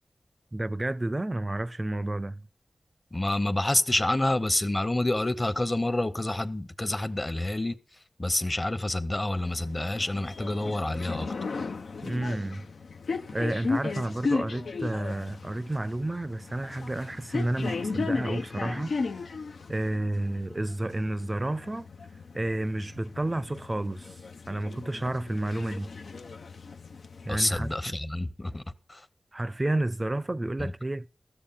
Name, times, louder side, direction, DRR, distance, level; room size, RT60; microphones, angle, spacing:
voice 1, 0.5-2.4 12.0-12.7 13.3-19.0 19.7-21.9 22.3-24.2 24.5-25.9 27.2-27.7 29.3-31.1, right 1 dB, 30° right, 0.5 m, -31 dB
voice 2, 3.1-7.8 8.2-11.3 27.3-28.6 28.9-29.1 30.6-30.7, left 1 dB, 30° left, 0.9 m, -28 dB
sound 1, 9.4-27.8, left 4 dB, 85° left, 0.6 m, -36 dB
14.5 x 6.7 x 5.6 m
cardioid pair, 50°, 0 cm